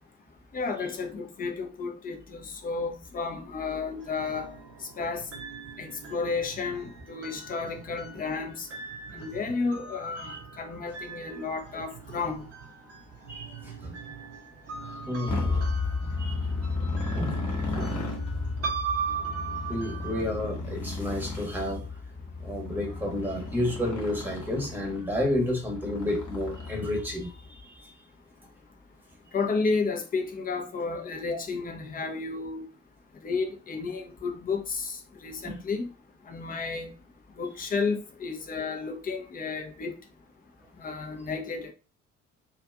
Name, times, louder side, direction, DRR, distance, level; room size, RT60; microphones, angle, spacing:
voice 1, 0.5-4.5 4.8-5.3 5.8-8.7 9.1-12.5 29.3-32.6 33.2-35.9 36.3-36.9 37.4-40.0 40.8-41.7, left 4 dB, 20° left, 0.5 m, -32 dB
sound 1, 4.0-20.3, right 6 dB, 35° right, 0.9 m, -40 dB
voice 2, 13.3-14.0 14.8-15.7 16.2-16.4 17.2-17.4 17.7-18.1 18.6-18.7 19.7-21.9 22.4-27.7 31.3-31.4 35.4-35.6, left 1 dB, 5° right, 1.0 m, -31 dB
Motorcycle, 15.3-27.4, left 3 dB, 45° left, 1.1 m, -33 dB
2.5 x 2.3 x 2.3 m
figure-of-eight pair, 50°, 41 cm